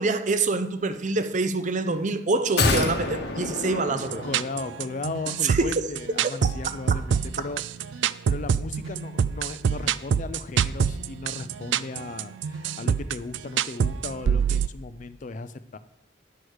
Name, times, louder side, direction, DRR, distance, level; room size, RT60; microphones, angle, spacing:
voice 1, 0.0-4.3 5.4-5.8, right 3 dB, 40° right, 10 dB, 0.6 m, -25 dB
sound 1, 2.6-4.9 5.2-5.3, left 3 dB, 60° left, 1.0 m, -27 dB
sound 2, 4.0-14.7, right 7 dB, 75° right, 0.3 m, -26 dB
voice 2, 4.2-7.6 7.9-15.8, left 3 dB, 40° left, 13 dB, 0.4 m, -36 dB
10.0 x 4.7 x 6.4 m, 0.82 s
head